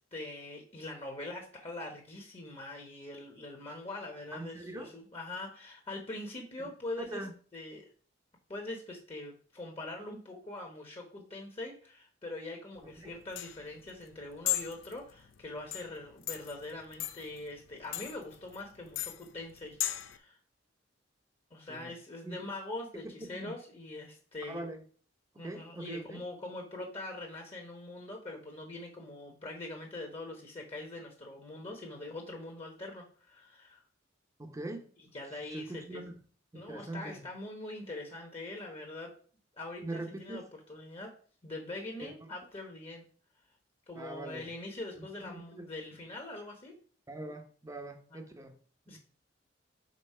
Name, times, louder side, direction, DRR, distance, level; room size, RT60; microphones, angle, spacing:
voice 1, 0.1-7.2 7.5-7.8 8.5-20.4 21.5-24.6 25.3-33.8 35.1-36.1 36.5-39.1 39.6-40.4 40.7-41.1 41.4-43.0 43.9-46.8 48.1-48.2 48.9-49.0, left 2 dB, 30° left, 1 dB, 1.2 m, -43 dB
voice 2, 4.3-4.9 7.0-7.3 12.8-13.1 21.7-21.9 22.2-22.3 23.2-23.5 24.5-24.8 25.3-26.2 34.4-34.9 35.3-36.1 36.5-37.2 39.8-40.4 42.0-42.3 44.0-44.4 45.0-45.7 47.1-48.6 48.9-49.0, right 2 dB, 15° right, 5 dB, 0.8 m, -42 dB
sound 1, 12.8-20.2, left 13 dB, 75° left, 0.5 m, -38 dB
5.4 x 4.0 x 5.5 m, 0.43 s
head